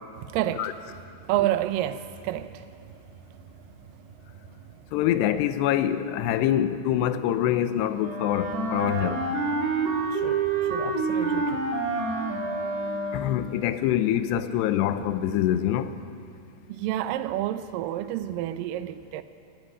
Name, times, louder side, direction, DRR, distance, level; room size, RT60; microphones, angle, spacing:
voice 1, 0.2-3.0 3.4-3.5 4.3-4.4 9.0-9.1 10.1-11.7 16.7-19.2, right 13 dB, 90° right, 1.9 m, -30 dB
voice 2, 4.9-9.2 13.1-15.9, left 11 dB, 85° left, 2.9 m, -25 dB
sound 1, 5.9-7.5 7.8-11.7 12.0-13.7, left 4 dB, 50° left, 2.3 m, -45 dB
Wind instrument woodwind instrument, 8.0-13.4, right 3 dB, 70° right, 4.4 m, -28 dB
22.0 x 13.5 x 9.7 m
omnidirectional pair, 4.9 m